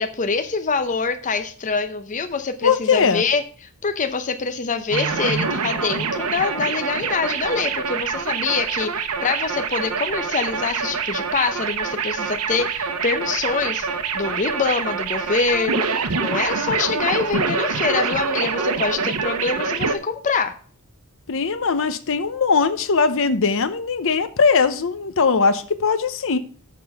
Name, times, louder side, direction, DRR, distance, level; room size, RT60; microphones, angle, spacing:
voice 1, 0.0-3.4 3.8-13.9 14.1-20.5, left 4 dB, 35° left, 7 dB, 0.7 m, -25 dB
voice 2, 2.6-3.2 21.3-26.4, left 5 dB, 60° left, 11 dB, 0.8 m, -20 dB
sound 1, 4.9-19.9, right 5 dB, 80° right, 0.9 m, -25 dB
6.9 x 6.0 x 6.5 m, 0.43 s
head